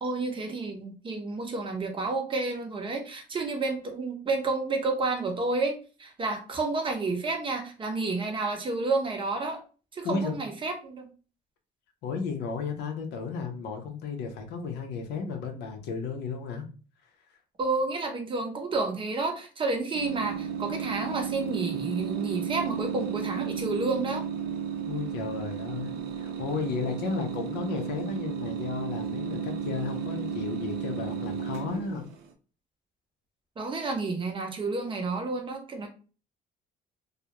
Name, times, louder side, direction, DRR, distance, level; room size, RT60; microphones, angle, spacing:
voice 1, 0.0-5.7 6.0-9.6 9.9-11.1 17.6-24.2 33.6-35.9, right 3 dB, 30° right, 3 dB, 0.6 m, -30 dB
voice 2, 10.0-10.4 12.0-16.6 24.9-32.1, left 5 dB, 80° left, 4 dB, 0.6 m, -33 dB
sound 1, 19.9-32.3, right 7 dB, 75° right, 0.5 m, -33 dB
2.3 x 2.0 x 2.8 m, 0.37 s
cardioid pair, 110°, 17 cm